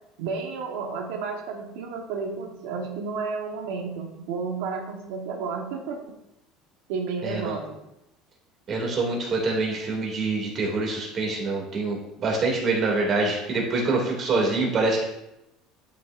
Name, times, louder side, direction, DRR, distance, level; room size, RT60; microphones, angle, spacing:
voice 1, 0.2-6.1 6.9-7.8, right 5 dB, 90° right, 2 dB, 1.1 m, -32 dB
voice 2, 7.2-7.6 8.7-15.1, right 3 dB, 35° right, -1 dB, 2.3 m, -25 dB
11.5 x 6.0 x 2.5 m, 0.87 s
cardioid pair, 155°, 0 cm